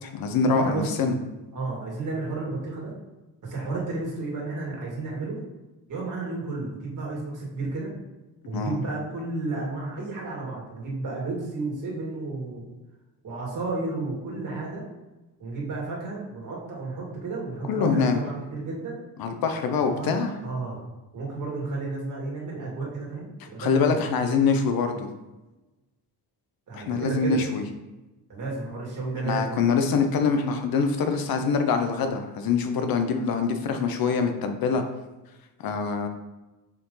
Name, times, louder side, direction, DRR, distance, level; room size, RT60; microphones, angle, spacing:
voice 1, 0.0-1.2 8.5-8.8 17.6-18.2 19.2-20.3 23.6-25.1 26.7-27.6 29.2-34.8 35.6-36.1, left 5 dB, 65° left, 6 dB, 0.9 m, -24 dB
voice 2, 0.5-0.9 1.5-2.9 3.4-5.4 5.9-7.9 8.5-12.6 13.2-14.8 15.4-19.0 19.8-20.1 20.4-20.8 21.1-24.0 26.7-27.4 28.3-29.7, right 3 dB, 50° right, -4 dB, 2.3 m, -32 dB
6.8 x 5.0 x 3.9 m, 1.1 s
cardioid pair, 175°, 39 cm